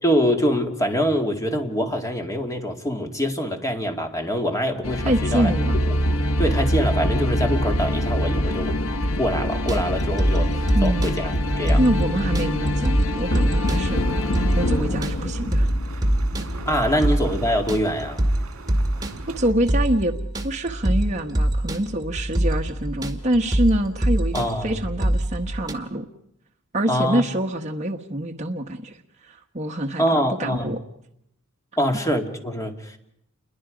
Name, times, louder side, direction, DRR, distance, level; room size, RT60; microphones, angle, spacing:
voice 1, 0.0-5.5 5.9-6.0 6.4-8.7 9.2-10.5 10.8-11.8 16.7-18.2 24.3-24.7 26.9-27.2 30.0-30.7 31.8-33.0, equal, 15° left, 4 dB, 2.2 m, -24 dB
sound 1, 4.8-16.8, equal, 90° left, 1.1 m, -24 dB
voice 2, 5.0-5.8 10.7-11.1 11.8-14.0 14.6-15.7 16.9-17.1 19.4-20.2 20.4-26.1 26.7-30.8, right 1 dB, 35° right, 2 dB, 1.2 m, -25 dB
sound 2, 9.5-25.7, right 1 dB, 20° right, 2.1 m, -24 dB
sound 3, 13.8-19.5, right 2 dB, 75° right, 2.0 m, -40 dB
29.0 x 22.0 x 5.0 m, 0.77 s
head